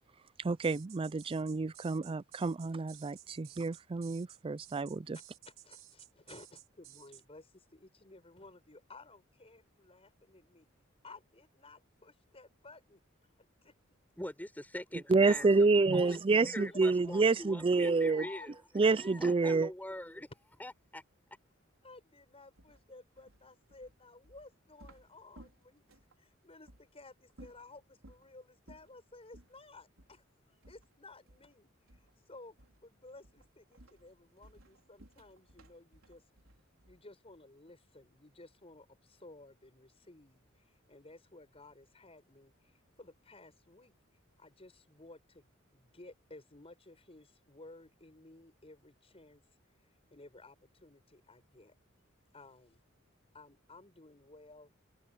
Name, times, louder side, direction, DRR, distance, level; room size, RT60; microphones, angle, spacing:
voice 1, 0.4-5.2 15.1-17.3 17.7-18.2 18.7-19.7, right 3 dB, 25° right, 0.4 m, -28 dB
sound 1, 0.6-7.2, right 13 dB, 70° right, 2.5 m, -55 dB
voice 2, 5.1-10.7 11.0-13.0 13.6-13.8 15.9-16.8 18.1-18.5 21.8-25.8 26.2-32.6 32.8-36.2 36.9-43.9 44.4-49.4 50.1-51.7 52.3-52.8 53.3-54.7, left 2 dB, 30° left, 5.6 m, -55 dB
voice 3, 14.2-15.5 15.9-16.0 16.5-17.6 18.0-18.5 18.8-20.3 20.6-21.0, left 1 dB, 10° left, 4.6 m, -43 dB
sound 2, 22.6-26.2 26.7-26.9 27.3-28.3 28.7-29.0 29.3-29.6 30.0-30.2 30.6-31.6 31.9-32.2 32.6-32.9 33.2-37.2, right 1 dB, 85° right, 4.5 m, -59 dB
head